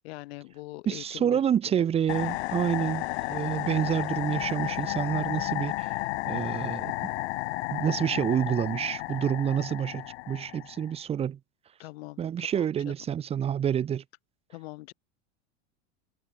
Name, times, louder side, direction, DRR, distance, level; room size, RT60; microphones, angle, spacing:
voice 1, 0.0-1.4 1.7-1.8 3.5-3.9 11.8-12.9 14.5-14.9, left 20 dB, 70° left, 4.1 m, -43 dB
voice 2, 0.9-6.0 6.3-6.9 7.7-11.4 12.2-14.0, right 9 dB, 20° right, 1.9 m, -28 dB
sound 1, 2.1-10.9, left 20 dB, 90° left, 1.0 m, -33 dB
supercardioid pair, 180°, 32 cm